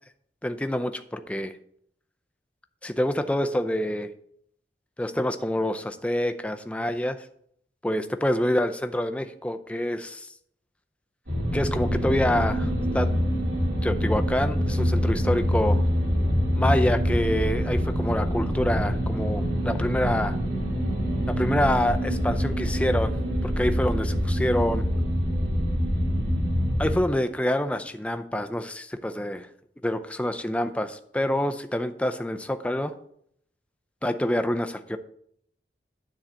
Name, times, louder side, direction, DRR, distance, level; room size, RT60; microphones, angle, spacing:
voice 1, 0.4-1.5 2.8-4.1 5.0-7.2 7.8-10.3 11.5-13.1 13.8-15.8 16.5-20.4 21.3-23.1 23.4-24.9 26.8-29.5 29.8-32.9 34.0-35.0, left 1 dB, 5° left, 8 dB, 0.5 m, -26 dB
sound 1, 11.3-27.0, equal, 75° right, 2.9 m, -25 dB
10.0 x 3.9 x 7.4 m, 0.68 s
head